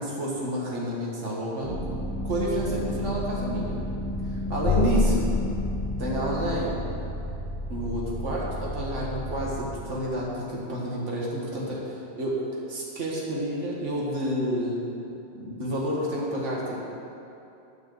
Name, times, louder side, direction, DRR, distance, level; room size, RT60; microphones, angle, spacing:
voice 1, 0.0-1.8 2.2-3.8 4.2-5.2 6.0-6.8 7.7-12.4 12.7-14.9 15.3-16.8, equal, 85° right, -4 dB, 1.9 m, -29 dB
sound 1, 1.6-10.3, equal, 15° left, 2.1 m, -33 dB
sound 2, 4.6-7.1, left 2 dB, 40° left, 0.4 m, -27 dB
9.6 x 4.8 x 7.8 m, 2.8 s
omnidirectional pair, 1.2 m